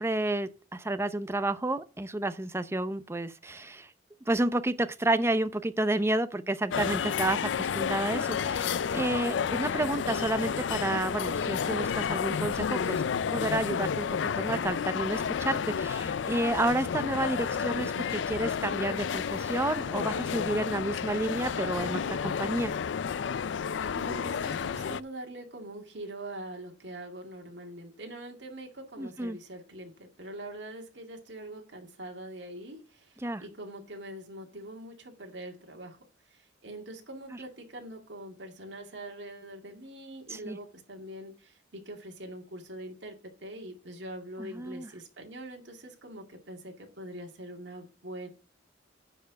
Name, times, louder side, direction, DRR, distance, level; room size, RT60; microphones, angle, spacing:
voice 1, 0.0-3.9 4.3-13.0 13.3-14.1 14.4-22.7 29.0-29.4 33.2-33.4 40.3-40.6 44.4-44.9, right 2 dB, 15° right, 0.6 m, -30 dB
sound 1, 6.7-25.0, left 6 dB, 75° left, 0.4 m, -31 dB
voice 2, 24.0-36.0 36.3-48.3, right 1 dB, 65° right, 2.2 m, -43 dB
9.8 x 4.6 x 6.9 m
head